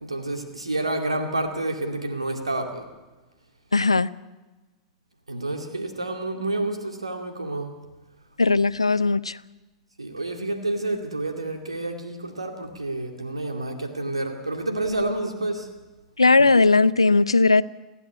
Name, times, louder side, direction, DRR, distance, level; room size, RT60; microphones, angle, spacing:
voice 1, 0.0-2.8 5.3-7.8 10.0-15.7, right 2 dB, 85° right, 4 dB, 2.3 m, -29 dB
voice 2, 3.7-4.1 8.4-9.3 16.2-17.6, left 3 dB, 85° left, 17 dB, 0.6 m, -18 dB
29.5 x 10.0 x 9.4 m, 1.2 s
figure-of-eight pair, 95°, 3 cm